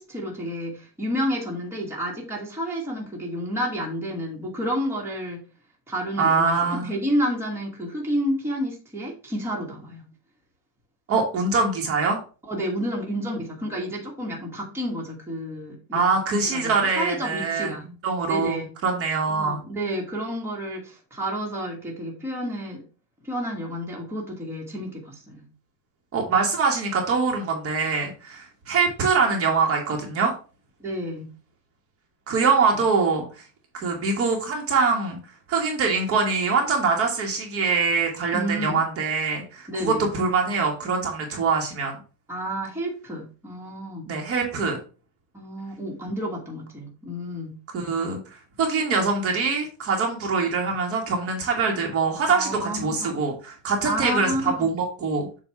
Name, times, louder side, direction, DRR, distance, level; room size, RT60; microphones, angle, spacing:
voice 1, 0.0-5.4 5.9-10.1 12.4-16.0 16.5-17.8 18.3-18.7 19.3-22.8 23.2-25.4 30.8-31.3 32.4-32.8 38.3-38.8 39.7-40.1 42.3-44.1 45.3-47.6 52.3-53.1 53.8-54.7, equal, 5° right, -2 dB, 1.4 m, -30 dB
voice 2, 6.2-6.9 11.1-12.2 15.9-17.7 18.0-19.6 26.1-30.3 32.3-33.2 33.7-35.2 35.5-42.0 44.1-44.8 47.7-48.2 48.6-55.3, right 4 dB, 30° right, 1 dB, 1.3 m, -23 dB
7.3 x 2.6 x 5.6 m, 0.35 s
supercardioid pair, 155°, 44 cm